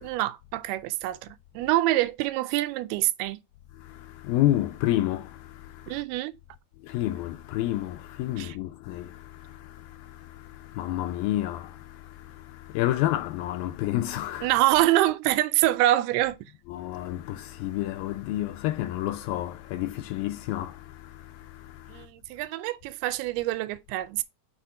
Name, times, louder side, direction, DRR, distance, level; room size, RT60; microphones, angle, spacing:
voice 1, 0.0-1.3 1.6-3.4 5.9-6.3 8.4-8.6 14.4-16.4 21.9-24.2, right 15 dB, 85° right, 2.6 m, -25 dB
voice 2, 3.8-6.0 6.8-14.5 16.7-22.1, left 14 dB, 80° left, 2.2 m, -30 dB
6.5 x 4.2 x 5.6 m
omnidirectional pair, 4.5 m